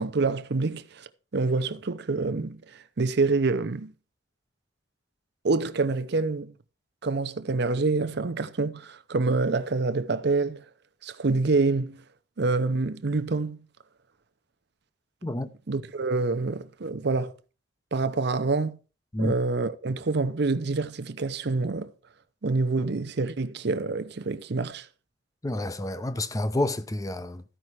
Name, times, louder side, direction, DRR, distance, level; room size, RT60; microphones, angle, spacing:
voice 1, 0.0-3.9 5.4-6.5 7.0-10.6 11.0-12.0 12.4-13.6 15.7-17.4 17.9-18.8 19.2-21.9 22.4-24.9, right 3 dB, 60° right, 0.7 m, -27 dB
voice 2, 25.4-27.4, left 1 dB, 20° left, 0.6 m, -29 dB
13.5 x 5.5 x 4.6 m
head